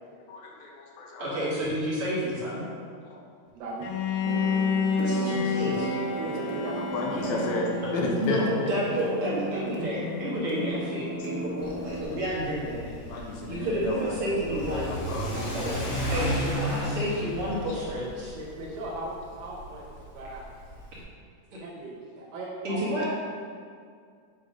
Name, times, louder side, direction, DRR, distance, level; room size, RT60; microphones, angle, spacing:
voice 1, 0.3-1.2 3.1-3.2 6.9-7.7 7.9-8.7 13.1-14.2 14.5-15.7, left 2 dB, 70° left, -1 dB, 2.0 m, -32 dB
voice 2, 1.2-2.6 5.0-5.9 8.2-14.9 15.3-15.8 16.1-18.3 20.9-21.0 22.6-23.0, equal, 45° right, -8 dB, 2.6 m, -30 dB
voice 3, 3.5-3.9 6.2-6.8 7.2-7.3 11.9-12.0 16.0-16.3 16.5-16.6 18.3-19.9 20.1-20.4 21.6-23.0, right 2 dB, 90° right, -4 dB, 2.7 m, -38 dB
Bowed string instrument, 3.8-8.8, left 5 dB, 85° left, 2.4 m, -30 dB
sound 1, 4.2-12.0, right 2 dB, 70° right, 2.4 m, -34 dB
Car / Accelerating revving vroom, 11.6-21.0, equal, 55° left, 2.3 m, -34 dB
8.6 x 3.9 x 5.2 m, 2.2 s
omnidirectional pair, 3.8 m